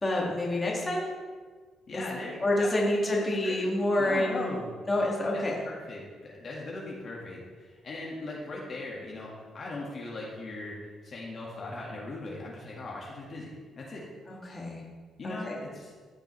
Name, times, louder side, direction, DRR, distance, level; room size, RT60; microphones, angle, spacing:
voice 1, 0.0-1.1 1.9-2.1 2.4-4.5 4.9-5.6 14.3-14.8 15.2-15.6, left 1 dB, 25° left, -3 dB, 2.0 m, -28 dB
voice 2, 1.9-2.9 3.2-3.7 4.0-4.7 5.3-10.8 11.0-13.5 13.7-14.0 15.2-15.9, left 2 dB, 50° left, -4 dB, 1.7 m, -39 dB
14.0 x 5.1 x 3.2 m, 1.5 s
cardioid pair, 90°, 0 cm